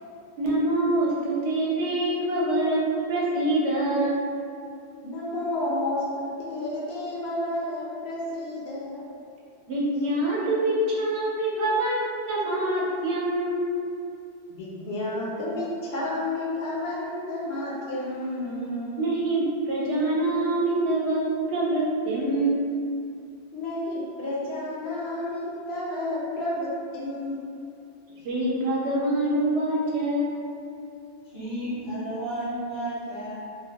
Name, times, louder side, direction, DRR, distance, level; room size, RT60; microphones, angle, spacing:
voice 1, 0.4-2.8 3.1-4.2 9.7-13.8 19.0-21.2 21.5-22.7 28.2-30.4, right 1 dB, 70° right, -5 dB, 0.8 m, -25 dB
voice 2, 5.0-9.1 14.5-19.1 23.5-27.7 28.1-28.2, left 1 dB, 65° left, -6 dB, 0.8 m, -31 dB
voice 3, 31.2-33.3, right 1 dB, 35° right, -12 dB, 0.4 m, -32 dB
2.6 x 2.1 x 2.8 m, 2.4 s
omnidirectional pair, 1.2 m